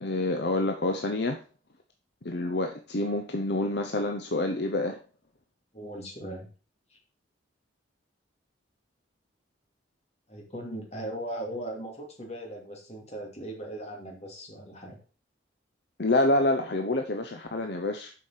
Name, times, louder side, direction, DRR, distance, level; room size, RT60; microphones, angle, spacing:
voice 1, 0.0-1.4 2.2-5.0 16.0-18.1, left 2 dB, 55° left, 4 dB, 0.8 m, -27 dB
voice 2, 5.7-6.5 6.9-7.0 10.3-15.0, right 1 dB, 35° left, 0 dB, 2.6 m, -38 dB
7.7 x 5.2 x 5.7 m, 0.37 s
head